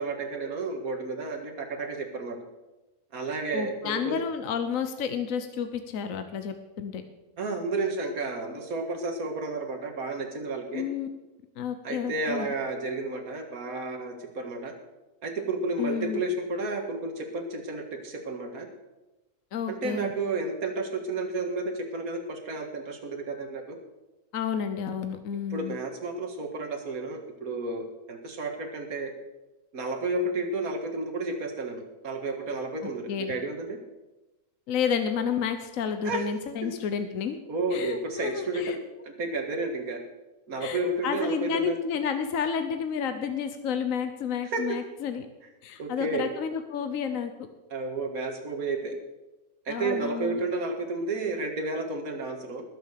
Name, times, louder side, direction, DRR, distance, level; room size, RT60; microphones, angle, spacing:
voice 1, 0.0-2.4 3.1-4.2 7.4-10.8 11.8-14.7 15.2-18.7 19.7-23.8 25.5-29.1 29.7-33.8 36.0-36.2 36.6-36.7 37.5-38.7 39.0-40.0 40.5-41.8 44.5-44.8 45.8-46.3 47.7-49.0 49.7-52.6, right 3 dB, 65° right, 3 dB, 2.3 m, -31 dB
voice 2, 3.5-7.0 10.7-11.1 11.6-12.5 15.8-16.2 19.5-20.1 24.3-25.7 32.8-33.3 34.7-37.4 37.7-38.8 40.6-45.3 45.6-47.3 49.7-50.4, left 7 dB, 65° left, 8 dB, 1.3 m, -31 dB
20.0 x 6.8 x 6.7 m, 1.0 s
omnidirectional pair, 1.6 m